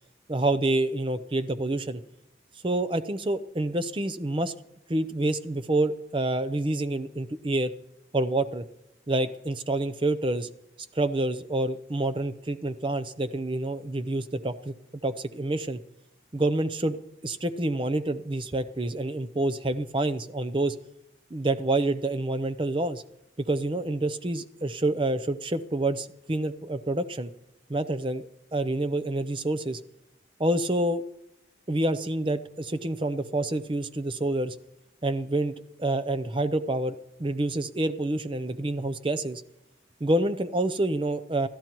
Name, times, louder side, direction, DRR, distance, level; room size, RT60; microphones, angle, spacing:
voice 1, 0.3-2.0 2.6-4.5 4.9-7.7 8.1-8.6 9.1-10.5 10.9-14.7 15.0-15.8 16.3-20.8 21.3-23.0 23.4-27.3 27.7-29.8 30.4-31.0 31.7-34.6 35.0-39.4 40.0-41.5, right 2 dB, 25° right, 12 dB, 0.6 m, -27 dB
28.0 x 12.5 x 3.0 m, 0.84 s
head